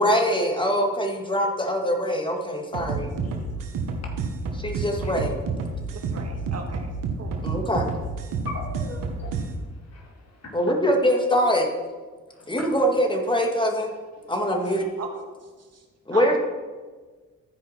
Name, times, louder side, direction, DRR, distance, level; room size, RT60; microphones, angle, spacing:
voice 1, 0.0-3.1 4.5-5.3 7.4-7.9 10.5-11.7 12.5-13.9 14.3-14.8 16.1-16.4, equal, 15° left, 2 dB, 2.1 m, -23 dB
sound 1, 2.7-9.5, right 4 dB, 90° right, 1.2 m, -29 dB
voice 2, 4.5-5.1 8.5-10.8 12.3-12.7 14.5-14.8, left 3 dB, 55° left, 0 dB, 2.3 m, -40 dB
voice 3, 5.9-6.9 7.2-7.4 12.9-13.1 15.0-15.1 15.4-15.8 16.1-16.4, right 5 dB, 55° right, 3 dB, 1.7 m, -39 dB
14.5 x 5.0 x 4.4 m, 1.4 s
supercardioid pair, 60°, 31 cm